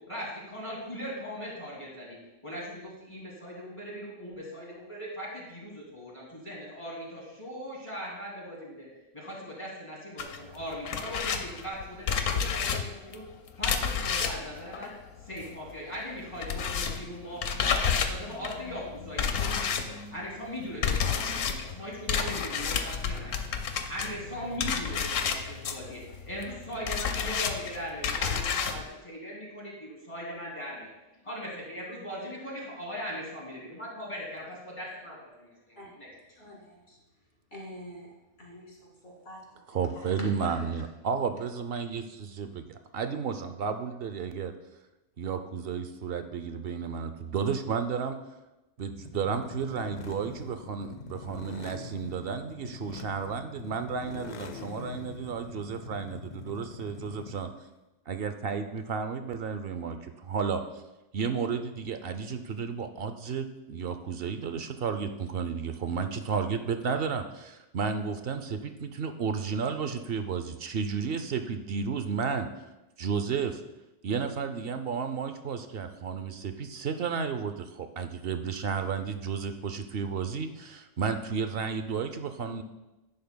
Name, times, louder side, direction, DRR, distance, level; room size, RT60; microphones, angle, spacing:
voice 1, 0.1-2.2 2.4-8.9 9.1-13.2 13.6-14.9 15.3-19.8 20.1-23.3 23.9-30.9 31.2-36.1, equal, 25° left, -5 dB, 2.7 m, -39 dB
sound 1, 10.2-15.7 16.0-28.8, left 6 dB, 90° left, 1.1 m, -31 dB
voice 2, 36.4-37.0 37.5-38.1 38.4-40.7, equal, 55° left, -3 dB, 2.6 m, -46 dB
voice 3, 39.7-44.5 45.2-48.2 48.8-57.5 58.1-60.6 61.1-72.5 73.0-73.6 74.0-82.6, right 6 dB, 60° right, 8 dB, 0.7 m, -32 dB
sound 2, 49.0-57.5, left 6 dB, 70° left, 0.4 m, -44 dB
11.0 x 10.0 x 2.2 m, 1.0 s
omnidirectional pair, 1.3 m